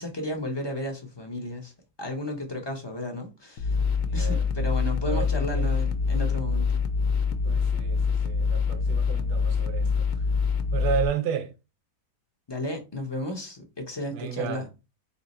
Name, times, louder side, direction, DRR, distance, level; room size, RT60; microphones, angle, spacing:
voice 1, 0.0-1.7 2.0-3.8 4.1-6.7 12.5-14.6, left 1 dB, 30° left, 0.4 m, -33 dB
sound 1, 3.6-11.1, left 5 dB, 70° left, 0.9 m, -25 dB
voice 2, 4.0-4.5 5.1-5.7 7.4-10.1 10.7-11.5 14.1-14.7, right 8 dB, 85° right, 1.2 m, -32 dB
3.5 x 2.7 x 4.1 m
omnidirectional pair, 1.7 m